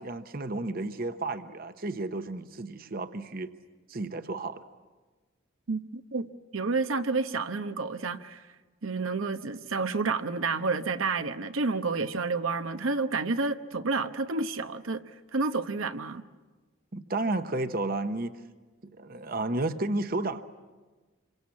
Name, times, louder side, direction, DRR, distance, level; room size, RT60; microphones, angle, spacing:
voice 1, 0.0-3.5 3.9-4.6 16.9-18.3 18.8-20.4, right 2 dB, 45° right, 0.9 m, -32 dB
voice 2, 5.7-6.3 6.5-8.4 8.8-15.0 15.3-16.2, right 3 dB, 85° right, 1.0 m, -30 dB
27.5 x 23.5 x 8.5 m
head